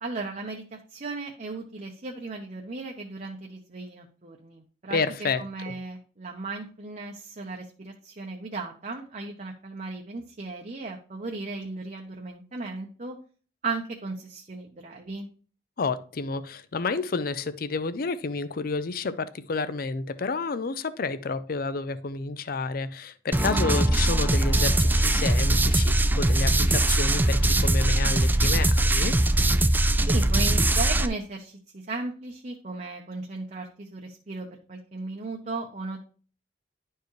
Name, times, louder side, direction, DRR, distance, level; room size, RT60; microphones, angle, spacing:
voice 1, 0.0-5.0 5.4-13.2 13.6-15.3 30.1-36.0, right 3 dB, 45° right, 1 dB, 0.8 m, -36 dB
voice 2, 4.9-5.7 15.8-29.1, left 4 dB, 55° left, 14 dB, 0.5 m, -30 dB
sound 1, 23.3-31.1, right 1 dB, 10° right, 0.4 m, -21 dB
11.0 x 4.6 x 3.1 m, 0.40 s
head